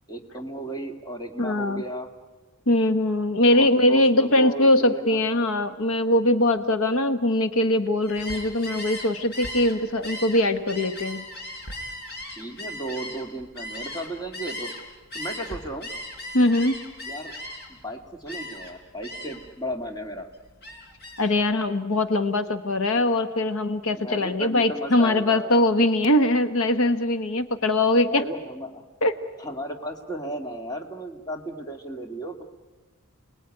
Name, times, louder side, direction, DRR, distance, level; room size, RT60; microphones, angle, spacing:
voice 1, 0.1-2.1 3.5-5.2 12.3-14.7 15.1-15.9 17.0-17.3 17.7-20.3 23.9-25.7 28.1-28.8 29.4-32.4, right 1 dB, 20° left, 3 dB, 2.3 m, -35 dB
voice 2, 1.4-1.8 2.7-11.3 16.3-16.8 21.2-28.2 29.0-29.1, left 1 dB, 70° left, 10 dB, 1.2 m, -21 dB
Gull seagull, 8.0-14.8 15.1-17.8 18.3-18.7 19.0-19.5 19.9-21.3, left 1 dB, 50° left, 4.3 m, -37 dB
30.0 x 20.0 x 9.7 m, 1.3 s
head